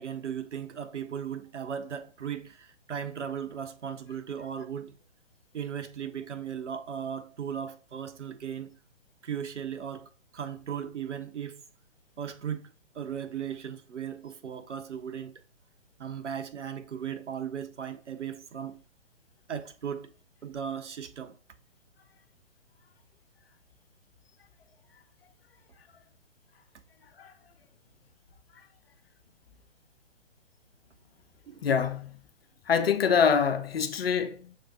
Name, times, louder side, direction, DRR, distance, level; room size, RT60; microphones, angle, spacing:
voice 1, 0.0-5.0 5.5-8.7 9.2-11.6 12.2-12.7 12.9-15.4 16.0-18.8 19.5-20.1 20.4-21.3 31.5-31.6, right 8 dB, 75° right, 0.6 m, -37 dB
voice 2, 31.6-32.2 32.7-34.5, left 6 dB, 55° left, 0.5 m, -25 dB
6.4 x 2.7 x 2.6 m
figure-of-eight pair, 125°, 35 cm